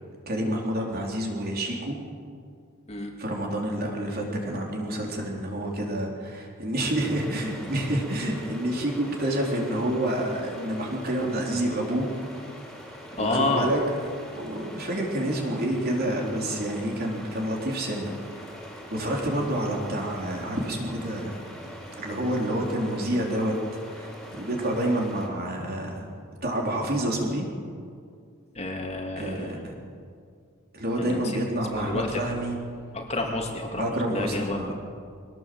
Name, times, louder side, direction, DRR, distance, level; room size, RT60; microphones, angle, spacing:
voice 1, 0.3-2.0 3.2-12.1 13.2-13.8 14.3-18.1 18.9-21.4 22.0-23.5 23.9-26.1 26.4-27.5 29.2-29.7 30.7-32.6 33.8-34.7, right 1 dB, 45° right, 0 dB, 4.0 m, -28 dB
sound 1, 6.9-25.3, equal, ahead, 4.7 m, -43 dB
voice 2, 13.2-13.7 28.5-29.6 31.0-31.4 31.7-32.2 32.9-33.8 34.1-34.7, left 2 dB, 30° left, 1 dB, 2.5 m, -29 dB
23.0 x 18.5 x 7.9 m, 2.2 s
head